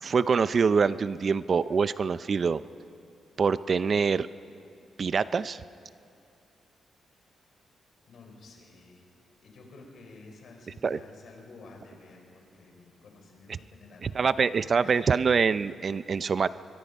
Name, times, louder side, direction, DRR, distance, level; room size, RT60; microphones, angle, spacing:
voice 1, 0.0-2.6 3.4-4.3 5.0-5.6 10.8-11.0 13.5-13.6 14.0-16.5, right 5 dB, 45° right, 15 dB, 0.5 m, -25 dB
voice 2, 8.1-9.0 9.4-15.0, left 3 dB, 65° left, 2 dB, 5.0 m, -51 dB
24.0 x 22.5 x 5.4 m, 2.4 s
cardioid pair, 105°, 0 cm